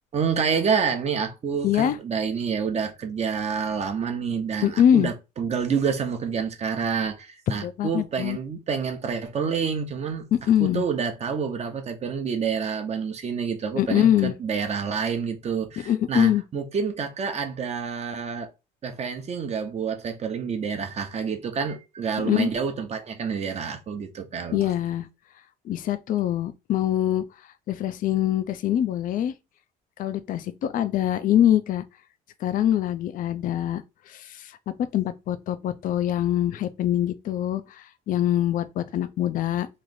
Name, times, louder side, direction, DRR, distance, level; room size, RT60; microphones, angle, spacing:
voice 1, 0.1-10.3 10.6-18.5 18.8-24.6, right 6 dB, 40° right, 0.8 m, -28 dB
voice 2, 1.6-2.0 4.6-5.1 7.6-8.4 10.3-10.8 13.7-14.3 15.8-16.4 22.2-22.5 24.5-25.1 25.6-27.2 27.7-29.3 30.0-31.8 32.4-39.7, left 11 dB, 55° left, 0.4 m, -24 dB
3.2 x 2.5 x 3.9 m
cardioid pair, 110°, 17 cm